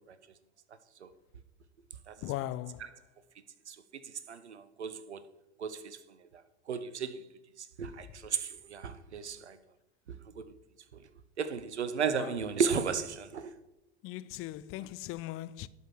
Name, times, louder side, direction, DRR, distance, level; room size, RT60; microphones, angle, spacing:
voice 1, 2.2-2.8 12.1-12.3 14.0-15.7, left 15 dB, 40° left, 0.5 m, -38 dB
voice 2, 3.7-5.2 5.6-6.0 6.3-6.4 6.7-7.2 7.6-9.6 10.4-10.5 11.4-13.5, right 6 dB, 85° right, 0.9 m, -34 dB
12.0 x 5.4 x 6.3 m
hypercardioid pair, 80°, 33 cm